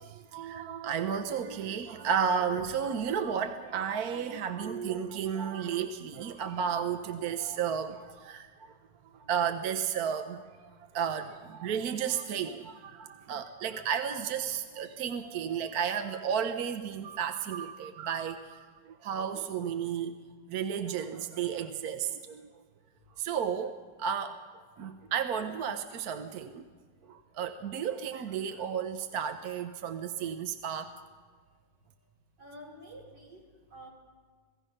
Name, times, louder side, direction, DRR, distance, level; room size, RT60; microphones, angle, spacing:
voice 1, 0.0-8.7 9.1-20.2 20.5-22.4 23.2-24.4 24.8-26.6 27.1-30.9, right 7 dB, 65° right, 7 dB, 1.3 m, -33 dB
voice 2, 4.5-5.3 19.5-19.6 19.9-20.0 32.4-33.4 33.7-33.9, right 4 dB, 80° right, -3 dB, 5.4 m, -44 dB
27.5 x 18.0 x 5.5 m, 1.5 s
omnidirectional pair, 1.9 m